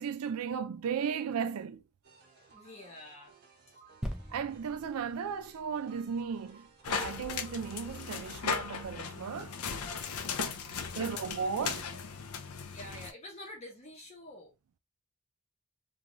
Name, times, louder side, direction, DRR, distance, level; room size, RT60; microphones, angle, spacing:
voice 1, 0.0-1.8 4.3-9.6 11.0-11.9, right 6 dB, 80° right, 0.4 m, -35 dB
sound 1, 2.0-9.4, right 4 dB, 45° right, 0.8 m, -59 dB
voice 2, 2.5-3.3 10.1-11.3 12.7-14.5, left 1 dB, 30° left, 0.8 m, -49 dB
sound 2, 4.0-7.6 8.2-8.3, equal, 5° right, 0.3 m, -44 dB
sound 3, 6.8-13.1, left 6 dB, 85° left, 0.5 m, -37 dB
2.5 x 2.3 x 2.9 m
head